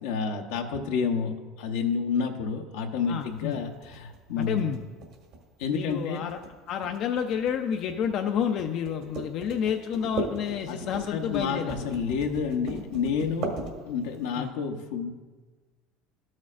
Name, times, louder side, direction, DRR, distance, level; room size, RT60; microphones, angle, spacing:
voice 1, 0.0-4.7 5.6-6.2 10.7-10.8 11.1-13.5 13.9-15.1, left 6 dB, 80° left, 4 dB, 0.9 m, -29 dB
voice 2, 3.1-3.6 4.4-4.8 5.7-6.4 6.7-11.8 14.4-14.5, left 8 dB, 55° left, 5 dB, 0.5 m, -29 dB
sound 1, 3.2-14.2, right 3 dB, 70° right, 1.8 m, -38 dB
13.0 x 6.3 x 2.5 m, 1.3 s
supercardioid pair, 105°, 0 cm